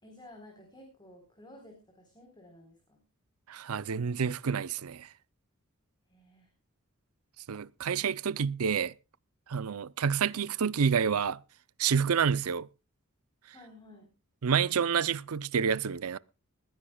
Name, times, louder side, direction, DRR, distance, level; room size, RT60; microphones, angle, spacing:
voice 1, 0.0-3.0 6.1-6.5 13.5-14.1, left 1 dB, 20° left, 4.1 m, -53 dB
voice 2, 3.5-5.1 7.5-8.9 9.5-11.4 11.8-12.7 14.4-16.2, right 6 dB, 90° right, 0.6 m, -28 dB
21.0 x 15.0 x 2.3 m
head